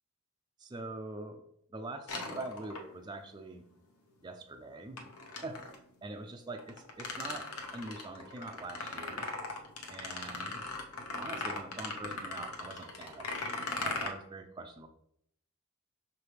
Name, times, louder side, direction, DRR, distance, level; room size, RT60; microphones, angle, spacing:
voice 1, 0.6-1.4 1.7-3.7 4.2-5.1 5.4-5.6 6.0-7.5 7.7-9.3 9.9-10.6 11.2-13.4 13.8-14.9, right 2 dB, 20° right, 4 dB, 0.4 m, -43 dB
sound 1, 2.1-3.2 5.0-5.8 6.6-14.1, left 3 dB, 85° left, 0.9 m, -39 dB
6.0 x 4.8 x 3.2 m, 0.72 s
head